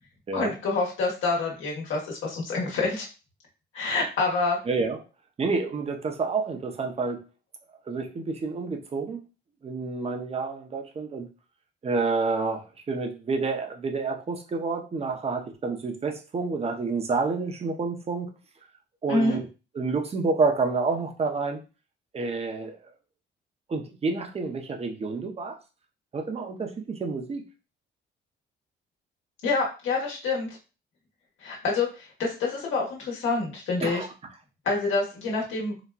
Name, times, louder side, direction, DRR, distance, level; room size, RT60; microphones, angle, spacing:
voice 1, 0.3-3.1 3.7-4.6 19.1-19.4 29.4-30.5 31.4-34.0 34.6-35.8, left 3 dB, 75° left, -3 dB, 1.1 m, -27 dB
voice 2, 4.7-5.0 5.4-7.2 7.9-9.2 9.6-11.3 11.8-18.3 19.0-19.5 19.7-21.6 22.1-22.8 23.7-25.6 26.1-27.4 33.8-34.1, right 4 dB, 30° right, 4 dB, 0.6 m, -29 dB
4.0 x 2.2 x 2.2 m, 0.31 s
cardioid pair, 90°, 20 cm